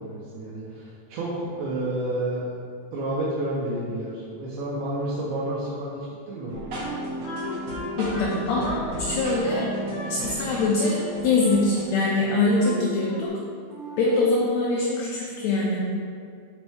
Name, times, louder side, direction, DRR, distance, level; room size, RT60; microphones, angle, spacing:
voice 1, 0.0-2.5 2.9-6.6, right 1 dB, 80° right, -5 dB, 2.3 m, -30 dB
sound 1, 6.5-13.3, right 1 dB, 60° right, 2.0 m, -34 dB
Wind instrument woodwind instrument, 6.8-10.2 10.5-11.6 12.1-13.4 13.7-14.1, equal, 25° left, 1.3 m, -38 dB
voice 2, 8.0-8.8 9.1-9.7 10.1-13.3 14.0-15.8, left 3 dB, 75° left, -3 dB, 1.8 m, -23 dB
7.7 x 5.3 x 3.5 m, 2.2 s
omnidirectional pair, 3.5 m